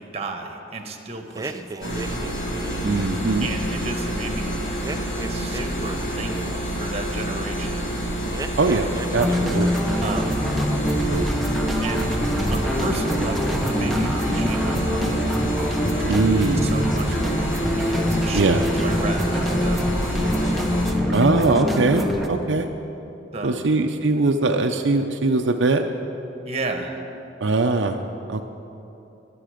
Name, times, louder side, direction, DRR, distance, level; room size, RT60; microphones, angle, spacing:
voice 1, 0.0-2.2 3.4-4.6 5.3-7.9 10.0-10.4 11.8-12.2 12.5-15.3 16.6-17.6 17.9-20.2 23.3-23.7 26.4-27.0, right 2 dB, 35° right, 5 dB, 1.3 m, -33 dB
sound 1, 1.3-3.2 4.8-6.6 8.3-9.4 9.7-10.2, right 3 dB, 20° right, 0.4 m, -36 dB
sound 2, 1.8-20.9, equal, 80° left, 2.6 m, -28 dB
voice 2, 2.8-3.5 8.6-9.7 10.7-11.3 16.0-16.7 18.3-18.6 21.1-22.7 23.4-25.8 27.4-28.0 28.3-28.4, right 3 dB, 75° right, 4 dB, 0.6 m, -21 dB
sound 3, 9.2-22.3, equal, ahead, 1.0 m, -24 dB
22.5 x 8.6 x 5.1 m, 2.9 s
head